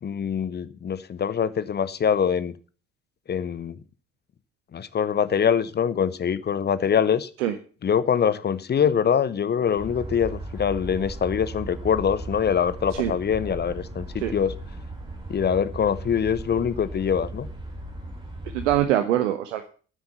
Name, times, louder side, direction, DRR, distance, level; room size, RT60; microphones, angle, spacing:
voice 1, 0.0-2.5 3.3-3.8 4.7-7.3 7.8-14.5 15.3-17.5, left 7 dB, 30° left, 0.7 m, -24 dB
sound 1, 9.8-18.8, right 1 dB, 15° right, 4.3 m, -37 dB
voice 2, 18.5-19.7, right 12 dB, 70° right, 0.8 m, -23 dB
9.6 x 8.1 x 7.0 m
figure-of-eight pair, 45°, 37 cm